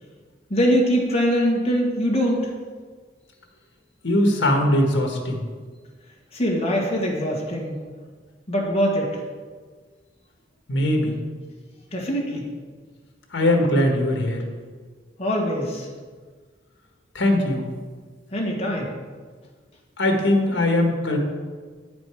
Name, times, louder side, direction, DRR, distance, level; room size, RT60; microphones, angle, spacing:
voice 1, 0.5-2.5 6.3-7.7 8.5-9.1 11.9-12.5 15.2-15.9 18.3-18.9, equal, 35° left, -2 dB, 1.6 m, -22 dB
voice 2, 4.0-5.4 10.7-11.1 13.3-14.4 17.1-17.6 20.0-21.2, left 1 dB, 85° left, 2 dB, 1.3 m, -20 dB
8.6 x 5.1 x 4.8 m, 1.5 s
head